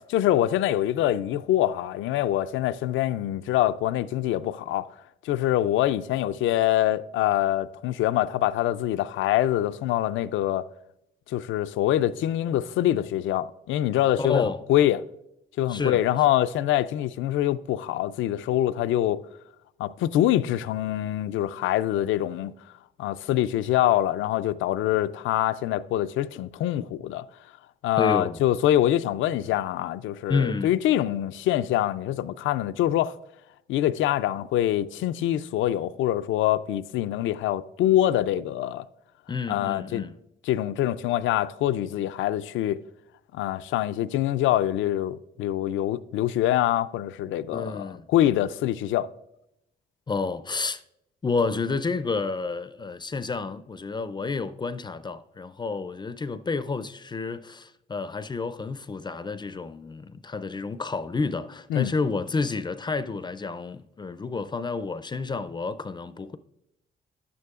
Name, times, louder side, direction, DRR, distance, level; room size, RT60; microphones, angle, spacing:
voice 1, 0.1-4.9 5.2-10.7 11.3-14.4 14.7-15.0 15.6-19.3 19.8-22.5 23.0-27.3 27.8-33.1 33.7-38.8 39.5-40.1 40.4-42.8 43.3-49.1 61.7-61.9, left 13 dB, 80° left, 0.4 m, -25 dB
voice 2, 14.2-14.6 15.7-16.0 28.0-28.4 30.3-30.7 39.3-40.2 47.5-48.0 50.1-50.8 51.2-66.4, left 4 dB, 20° left, 0.4 m, -30 dB
11.0 x 9.5 x 2.4 m
cardioid pair, 90°, 20 cm